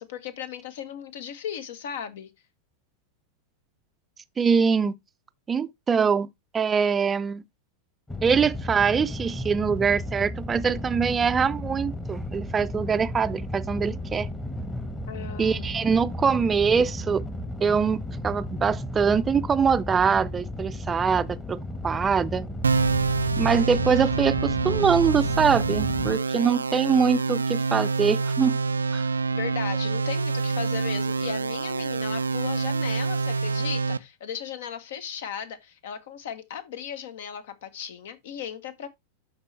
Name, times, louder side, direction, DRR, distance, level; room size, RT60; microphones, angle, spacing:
voice 1, 0.0-2.3 15.1-15.7 29.3-38.9, left 8 dB, 55° left, 1.1 m, -36 dB
voice 2, 4.4-4.9 5.5-6.3 6.5-7.4 8.2-14.3 15.4-17.2 17.6-22.5 23.4-28.6 28.9-29.0, right 6 dB, 20° right, 0.5 m, -23 dB
sound 1, 8.1-26.1, left 1 dB, 10° left, 1.2 m, -34 dB
sound 2, 22.6-34.0, right 4 dB, 75° right, 0.3 m, -26 dB
11.5 x 4.3 x 3.3 m
figure-of-eight pair, 90°, 0 cm